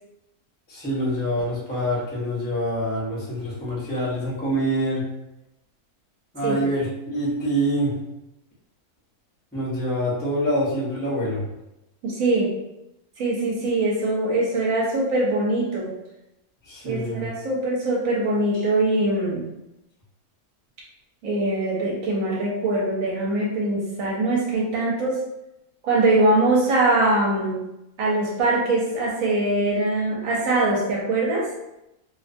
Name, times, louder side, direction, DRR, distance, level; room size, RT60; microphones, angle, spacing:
voice 1, 0.7-5.0 6.3-7.9 9.5-11.4 16.7-17.3, equal, 15° left, -7 dB, 0.4 m, -25 dB
voice 2, 12.0-12.5 13.2-15.9 16.8-19.5 21.2-25.2 25.8-27.6 28.0-31.5, right 2 dB, 70° right, -4 dB, 1.0 m, -22 dB
2.5 x 2.2 x 2.5 m, 0.90 s
omnidirectional pair, 1.6 m